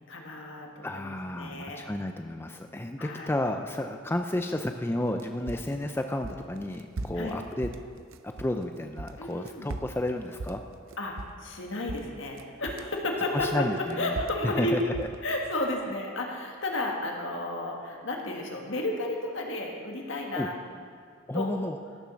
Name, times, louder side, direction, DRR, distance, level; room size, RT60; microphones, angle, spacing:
voice 1, 0.1-1.8 3.0-3.3 7.2-7.3 9.2-9.7 11.0-13.6 14.0-14.7 15.2-20.6 21.3-21.5, left 2 dB, 65° left, 1 dB, 1.7 m, -32 dB
voice 2, 0.8-7.7 8.2-10.6 13.3-14.2 14.4-15.1 20.3-20.5 21.3-21.8, left 1 dB, 10° left, 5 dB, 0.4 m, -32 dB
sound 1, 5.0-8.6 8.9-11.6 11.9-13.0 13.4-15.5, right 2 dB, 75° right, 0.6 m, -39 dB
15.5 x 7.2 x 6.2 m, 2.2 s
head